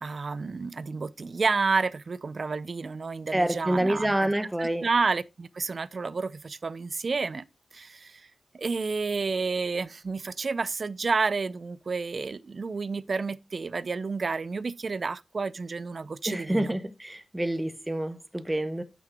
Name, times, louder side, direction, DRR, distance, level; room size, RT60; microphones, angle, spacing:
voice 1, 0.0-4.3 4.6-7.4 7.7-8.3 8.5-16.7, right 4 dB, 50° right, 0.3 m, -30 dB
voice 2, 3.3-4.9 16.3-18.8, right 1 dB, 10° right, 0.7 m, -27 dB
6.0 x 5.8 x 3.4 m
wide cardioid pair, 105°, 0 cm